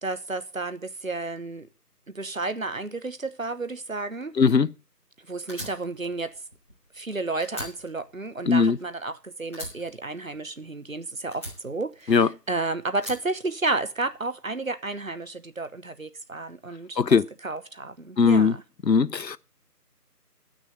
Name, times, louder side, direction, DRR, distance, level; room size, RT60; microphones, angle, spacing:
voice 1, 0.0-1.7 2.1-4.4 5.3-6.4 6.9-17.2 17.4-18.6, right 3 dB, 55° right, 1.0 m, -32 dB
voice 2, 4.4-4.7 8.5-8.8 12.1-12.3 17.0-17.2 18.2-18.6 18.9-19.4, left 5 dB, 85° left, 0.8 m, -19 dB
Fire, 5.5-7.1 7.4-9.1 9.5-10.9 11.3-12.5 13.0-14.1, left 1 dB, 10° left, 2.8 m, -42 dB
11.0 x 6.4 x 8.0 m
figure-of-eight pair, 165°, 49 cm